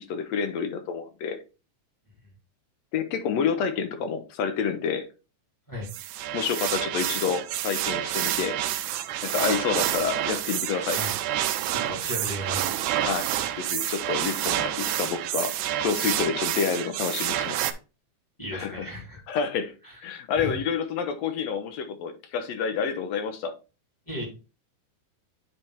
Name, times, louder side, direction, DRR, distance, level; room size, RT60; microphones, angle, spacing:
voice 1, 0.0-1.4 2.9-5.1 6.3-8.6 9.2-11.0 13.0-13.3 13.6-17.6 18.5-18.9 19.3-19.7 20.0-23.5, left 6 dB, 70° left, 1.7 m, -28 dB
sound 1, 5.8-17.7, right 12 dB, 80° right, 1.9 m, -28 dB
voice 2, 11.7-12.8 18.4-19.2 19.8-20.0 20.4-20.5 24.1-24.3, left 1 dB, 10° left, 1.4 m, -35 dB
8.7 x 3.4 x 4.5 m
omnidirectional pair, 3.7 m